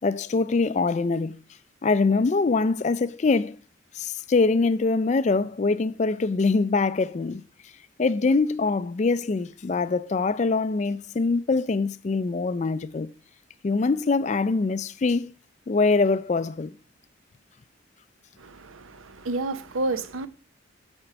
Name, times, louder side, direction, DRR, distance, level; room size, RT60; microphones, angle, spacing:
voice 1, 0.0-1.4 1.8-3.6 4.0-7.4 8.0-13.1 13.6-15.3 15.7-16.7, left 3 dB, 35° left, 0.3 m, -23 dB
voice 2, 18.4-20.3, right 2 dB, 85° right, 0.7 m, -30 dB
9.7 x 4.4 x 5.9 m
head